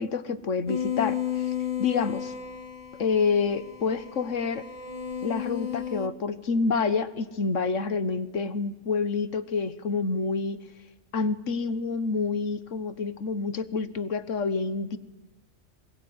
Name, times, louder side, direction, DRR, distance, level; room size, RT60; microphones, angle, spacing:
voice 1, 0.0-1.5 1.8-2.3 3.0-4.6 5.2-10.6 11.1-15.0, left 4 dB, 80° left, 14 dB, 1.7 m, -28 dB
sound 1, 0.7-6.1, left 9 dB, 30° left, 1.5 m, -33 dB
26.0 x 22.0 x 9.8 m, 1.1 s
omnidirectional pair, 1.3 m